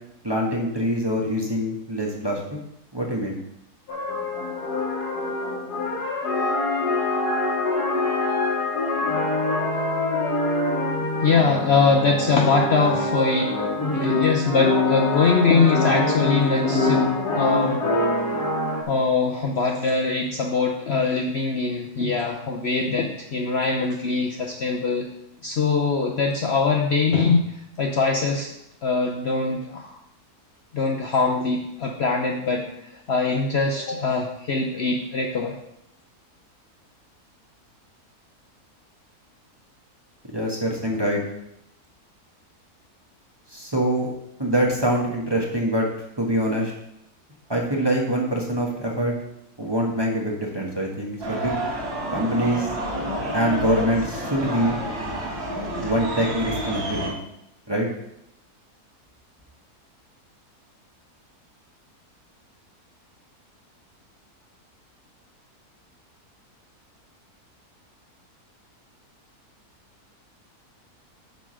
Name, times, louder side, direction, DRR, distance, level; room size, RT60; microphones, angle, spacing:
voice 1, 0.2-2.4 2.9-3.4 40.3-41.2 43.5-44.1 44.4-45.9 46.2-46.7 47.5-49.1 49.6-51.5 52.1-52.7 53.3-54.8 55.8-57.2 57.7-57.9, equal, 15° right, -2 dB, 1.3 m, -24 dB
sound 1, 3.9-18.8, left 2 dB, 85° left, 1.9 m, -24 dB
voice 2, 11.2-13.5 13.9-17.8 18.9-25.1 25.4-27.4 27.8-28.5 28.8-30.0 30.7-32.7 33.1-35.5, left 4 dB, 50° left, 1 dB, 0.9 m, -22 dB
sound 2, 51.2-57.1, right 1 dB, 85° right, 4.3 m, -29 dB
9.2 x 3.8 x 6.3 m, 0.80 s
omnidirectional pair, 1.6 m